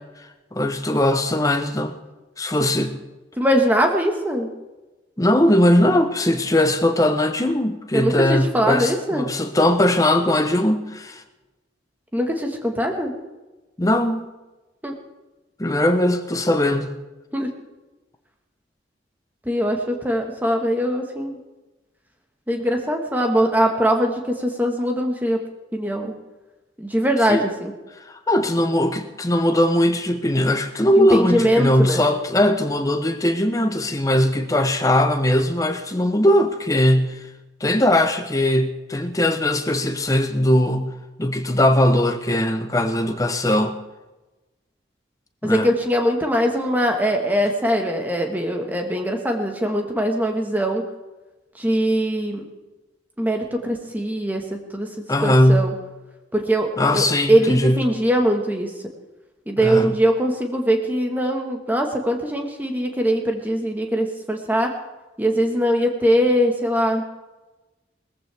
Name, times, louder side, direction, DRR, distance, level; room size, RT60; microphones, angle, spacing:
voice 1, 0.5-1.9 2.4-3.0 5.2-11.2 13.8-14.3 15.6-17.0 27.3-27.4 28.1-37.2 37.6-40.9 41.2-43.8 45.4-45.7 55.1-55.7 56.8-57.8 59.6-59.9, left 1 dB, 20° left, 7 dB, 0.9 m, -19 dB
voice 2, 3.4-4.5 7.9-9.3 12.1-13.1 14.8-14.9 17.3-17.5 19.4-21.4 22.5-25.4 25.7-26.2 26.8-27.7 31.0-32.0 45.4-50.8 51.6-52.5 53.2-54.9 55.2-55.7 56.3-58.7 59.5-64.7 65.2-67.0, equal, 10° right, 3 dB, 1.6 m, -21 dB
20.0 x 14.5 x 3.5 m, 1.1 s
head